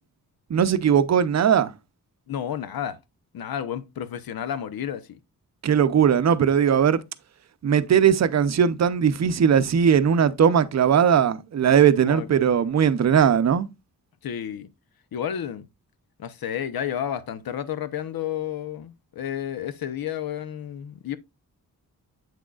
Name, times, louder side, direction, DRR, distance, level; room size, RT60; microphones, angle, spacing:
voice 1, 0.5-1.7 5.6-7.0 7.6-13.7, right 8 dB, 50° right, 0.6 m, -19 dB
voice 2, 2.3-3.0 3.3-5.2 12.1-12.5 14.2-14.7 15.1-15.7 16.2-21.2, left 9 dB, 80° left, 0.8 m, -31 dB
8.2 x 6.2 x 2.3 m
wide cardioid pair, 160°, 35 cm